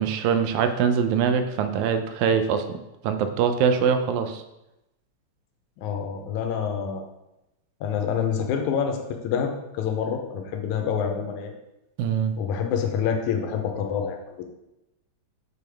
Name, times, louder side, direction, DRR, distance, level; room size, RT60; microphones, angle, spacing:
voice 1, 0.0-2.8 3.0-4.4 12.0-12.3, right 7 dB, 80° right, 8 dB, 1.9 m, -23 dB
voice 2, 5.8-7.1 7.8-11.5 12.4-14.4, left 7 dB, 85° left, 4 dB, 2.1 m, -27 dB
6.7 x 4.1 x 3.4 m, 0.92 s
omnidirectional pair, 3.4 m